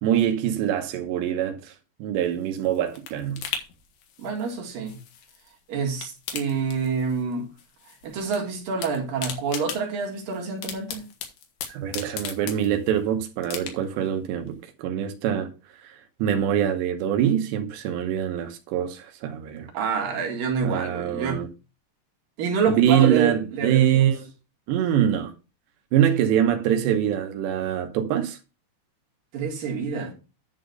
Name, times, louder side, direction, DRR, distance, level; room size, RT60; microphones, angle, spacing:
voice 1, 0.0-1.7 2.0-3.4 11.7-15.5 15.8-15.9 16.2-19.7 20.6-21.5 22.8-24.2 24.7-25.3 25.9-28.4, right 10 dB, 85° right, 3.2 m, -24 dB
sound 1, 2.2-5.5 5.8-7.3 7.6-8.4 8.6-13.0 13.4-14.1 14.5-14.6, left 8 dB, 70° left, 3.2 m, -37 dB
voice 2, 4.2-5.0 5.7-7.5 8.0-11.1 19.7-21.4 22.4-24.0 29.3-30.1, right 5 dB, 60° right, 3.4 m, -27 dB
10.5 x 3.9 x 6.5 m
omnidirectional pair, 4.8 m